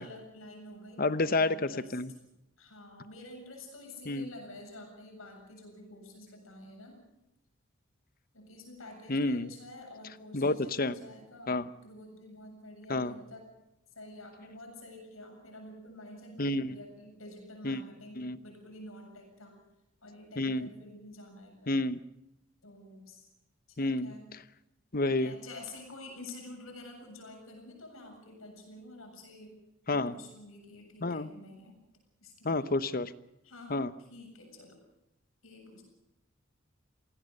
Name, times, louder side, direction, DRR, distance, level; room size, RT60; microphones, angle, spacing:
voice 1, 0.0-2.2 2.6-7.0 8.3-13.5 13.9-19.6 20.0-21.8 22.6-23.3 23.7-24.3 25.1-29.6 29.9-31.8 32.2-32.6 33.4-34.8 35.4-35.8, left 1 dB, 90° left, 3 dB, 7.6 m, -49 dB
voice 2, 1.0-1.5 1.9-2.1 4.1-4.2 9.1-9.5 10.3-10.9 11.5-11.6 12.9-13.1 16.4-16.8 17.6-17.8 18.2-18.4 20.4-20.7 21.7-22.0 23.8-24.1 24.9-25.3 29.9-30.1 31.0-31.3 32.4-33.1 33.7-33.9, left 2 dB, 45° left, 14 dB, 0.9 m, -29 dB
26.0 x 17.5 x 6.7 m, 0.88 s
head